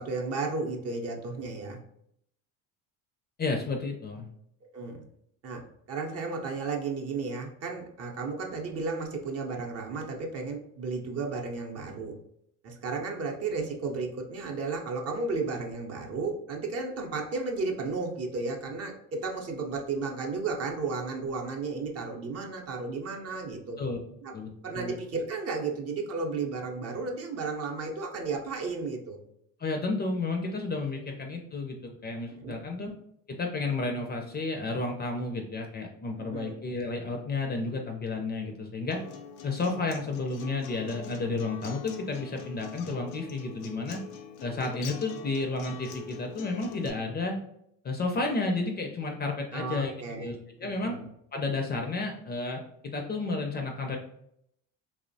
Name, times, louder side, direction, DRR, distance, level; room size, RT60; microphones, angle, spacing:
voice 1, 0.0-1.8 4.7-5.0 5.4-12.1 12.6-23.8 24.2-24.3 24.6-29.2 32.3-32.7 36.2-36.6 49.5-50.3 50.6-51.0, right 4 dB, 45° right, 1 dB, 0.6 m, -33 dB
voice 2, 3.4-4.3 23.8-24.0 24.3-24.9 29.6-32.9 33.3-39.0 39.4-44.0 44.4-47.4 47.8-51.0 51.3-54.0, left 3 dB, 30° left, 3 dB, 0.4 m, -32 dB
Acoustic guitar, 38.9-46.9, left 6 dB, 85° left, 0.5 m, -44 dB
2.9 x 2.0 x 2.6 m, 0.74 s
supercardioid pair, 90°, 36 cm